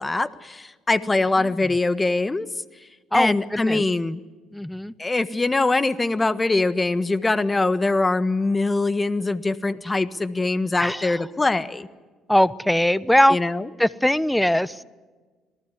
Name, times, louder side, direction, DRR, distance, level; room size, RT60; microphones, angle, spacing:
voice 1, 0.0-2.5 3.1-4.2 5.0-11.9 13.3-13.7, left 2 dB, 20° left, 13 dB, 1.5 m, -23 dB
voice 2, 3.1-3.8 4.5-4.9 10.8-11.2 12.3-13.4 13.8-14.8, equal, 5° left, 18 dB, 1.0 m, -21 dB
27.0 x 19.0 x 9.9 m, 1.3 s
hypercardioid pair, 60°, 0 cm